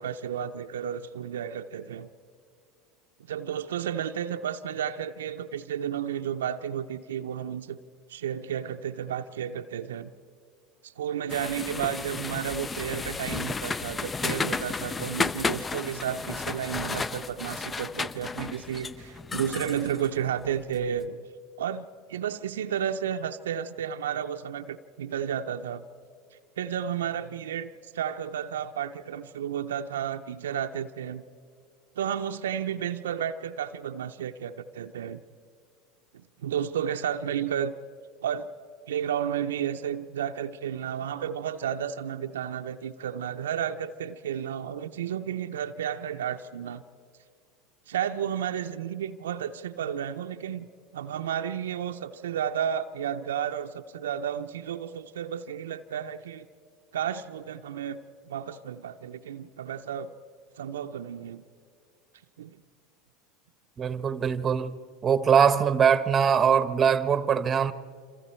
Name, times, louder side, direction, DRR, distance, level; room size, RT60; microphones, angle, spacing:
voice 1, 0.0-2.1 3.3-7.8 8.1-10.1 10.8-21.2 21.6-25.8 26.6-31.2 32.0-35.2 36.1-37.7 38.2-38.5 38.9-46.8 47.9-50.7 50.9-56.5 56.9-58.0 58.2-60.1 60.6-61.4 62.4-62.6, right 9 dB, 80° right, 0.6 m, -32 dB
sound 1, 11.3-20.8, left 4 dB, 20° left, 0.5 m, -33 dB
voice 2, 63.8-64.8 65.0-67.7, right 7 dB, 30° right, 0.9 m, -22 dB
27.0 x 26.5 x 4.4 m
hypercardioid pair, 85°, 0 cm